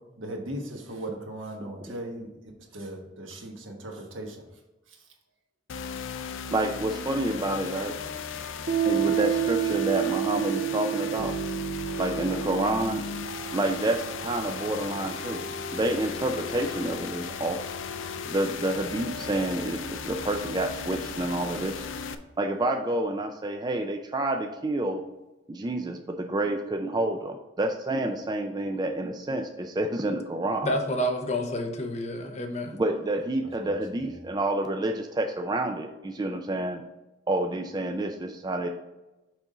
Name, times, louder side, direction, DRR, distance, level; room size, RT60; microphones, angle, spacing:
voice 1, 0.2-4.4 4.9-5.0 33.4-34.3, right 1 dB, 90° right, 2 dB, 1.3 m, -39 dB
sound 1, 5.7-22.1, left 5 dB, 85° left, 0.5 m, -36 dB
voice 2, 6.5-8.0 8.9-11.3 12.0-13.1 13.5-15.4 15.7-17.6 18.3-21.8 22.4-25.0 25.5-30.7 32.8-36.8 37.3-38.7, right 1 dB, 20° right, 4 dB, 0.4 m, -28 dB
Piano, 8.7-15.9, right 12 dB, 55° right, 0.8 m, -31 dB
voice 3, 30.6-32.7, equal, 35° left, 4 dB, 0.8 m, -29 dB
6.0 x 5.1 x 3.8 m, 1.0 s
head